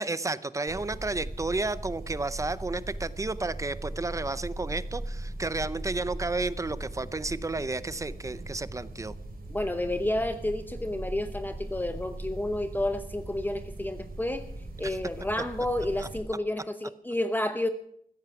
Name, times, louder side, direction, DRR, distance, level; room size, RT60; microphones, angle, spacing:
voice 1, 0.0-9.1 14.8-15.0 16.0-16.1, right 3 dB, 20° right, 15 dB, 0.6 m, -32 dB
sound 1, 0.7-16.2, right 1 dB, 90° right, 3.7 m, -39 dB
voice 2, 9.5-14.5 14.8-17.7, left 1 dB, 10° left, 8 dB, 0.8 m, -30 dB
15.0 x 14.5 x 5.9 m, 0.69 s
wide cardioid pair, 155°, 15 cm